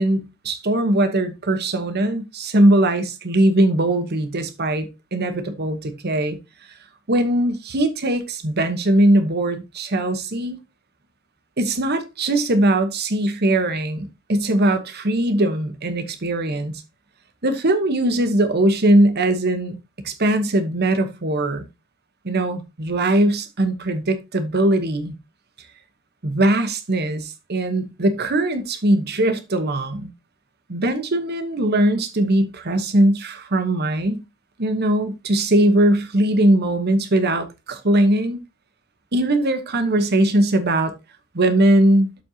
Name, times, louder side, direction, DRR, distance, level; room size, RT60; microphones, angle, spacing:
voice 1, 0.0-6.4 7.1-10.6 11.6-16.8 17.4-19.8 20.0-21.6 22.2-25.1 26.2-30.1 30.7-34.2 34.6-38.4 39.1-40.9 41.3-42.1, right 1 dB, 50° right, 1.1 m, -20 dB
12.5 x 4.3 x 2.8 m
head